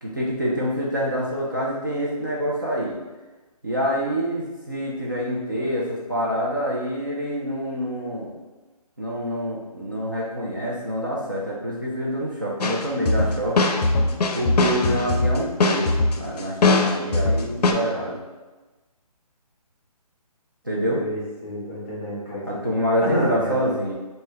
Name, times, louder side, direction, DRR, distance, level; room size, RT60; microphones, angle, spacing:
voice 1, 0.0-3.0 3.6-8.3 9.0-13.7 14.3-15.9 16.2-18.2 20.6-21.0 22.5-23.9, equal, 35° right, -5 dB, 0.4 m, -26 dB
sound 1, 12.6-17.7, left 3 dB, 90° left, 0.4 m, -21 dB
voice 2, 20.9-22.6 23.0-23.7, equal, 20° left, -8 dB, 0.6 m, -28 dB
3.1 x 2.1 x 3.3 m, 1.2 s
hypercardioid pair, 175°, 20 cm